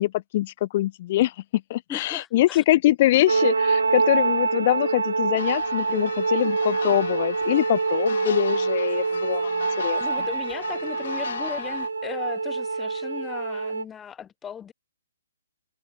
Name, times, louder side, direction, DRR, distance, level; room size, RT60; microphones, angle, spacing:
voice 1, 0.0-9.5 9.8-10.0, left 15 dB, 40° left, 3.6 m, -23 dB
voice 2, 1.9-2.6 10.0-14.7, left 8 dB, 15° left, 7.1 m, -37 dB
sound 1, 3.3-13.8, right 4 dB, 80° right, 2.0 m, -25 dB
sound 2, 5.4-11.9, left 8 dB, 60° left, 6.3 m, -37 dB
figure-of-eight pair, 130°, 0 cm